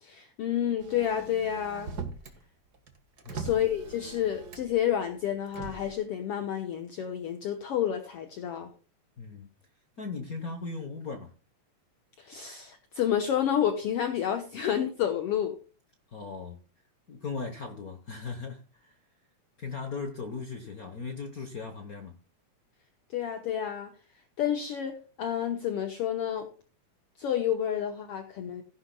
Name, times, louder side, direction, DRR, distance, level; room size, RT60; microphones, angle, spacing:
voice 1, 0.0-1.9 3.3-8.7 12.2-15.6 23.1-23.9 24.4-26.5 27.2-28.6, left 10 dB, 60° left, 1.7 m, -30 dB
Motor vehicle (road), 0.8-2.4 2.7-4.9 5.5-5.9, right 5 dB, 45° right, 1.5 m, -41 dB
voice 2, 9.2-9.5 10.0-11.3 16.1-16.6 17.1-18.9 19.6-22.2, left 4 dB, 80° left, 0.8 m, -38 dB
15.5 x 10.5 x 2.2 m
omnidirectional pair, 3.4 m